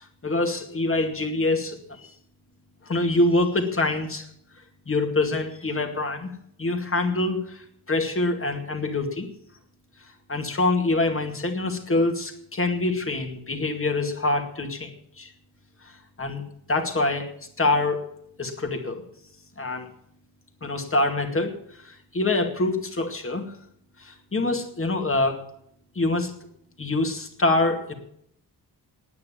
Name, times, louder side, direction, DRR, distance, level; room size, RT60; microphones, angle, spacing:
voice 1, 0.0-2.1 2.8-4.3 4.9-6.3 6.6-9.3 10.3-14.9 15.2-15.3 15.8-15.9 16.2-16.4 16.7-17.3 17.6-18.0 18.4-19.1 19.6-19.9 20.6-23.5 24.0-25.4 26.0-26.3 26.8-27.9, left 2 dB, 35° left, 4 dB, 2.2 m, -25 dB
9.6 x 9.5 x 9.9 m, 0.70 s
wide cardioid pair, 120°, 40 cm